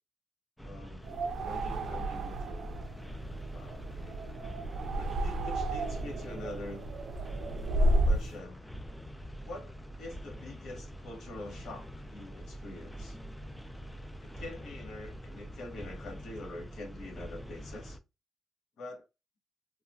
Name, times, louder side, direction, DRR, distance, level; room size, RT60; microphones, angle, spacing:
voice 1, 0.6-2.8 3.2-4.2 5.0-6.9 7.8-8.6 9.4-13.2 14.2-18.0 18.8-19.0, left 2 dB, 80° left, 1.1 m, -45 dB
sound 1, 0.6-18.0, equal, 5° left, 0.4 m, -45 dB
sound 2, 1.0-8.3, right 1 dB, 75° right, 0.4 m, -32 dB
2.8 x 2.2 x 2.6 m
cardioid pair, 105°, 0 cm